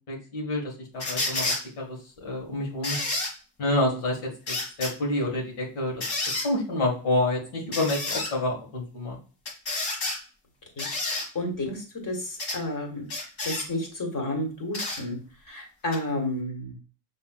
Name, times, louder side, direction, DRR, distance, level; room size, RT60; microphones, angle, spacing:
voice 1, 0.1-3.0 3.6-6.1 6.4-9.2, left 1 dB, 85° left, -2 dB, 1.9 m, -28 dB
sound 1, 1.0-1.6 2.8-3.3 4.5-4.9 6.0-6.5 7.7-8.3 9.5-10.2 10.8-11.3 12.4-12.6 13.1-13.7 14.7-15.0 15.9-16.0, left 2 dB, 70° left, 2.0 m, -29 dB
voice 2, 10.8-13.1 13.4-15.2 15.5-16.8, left 1 dB, 40° left, 1 dB, 1.9 m, -31 dB
5.8 x 3.3 x 2.4 m, 0.38 s
cardioid pair, 125°, 49 cm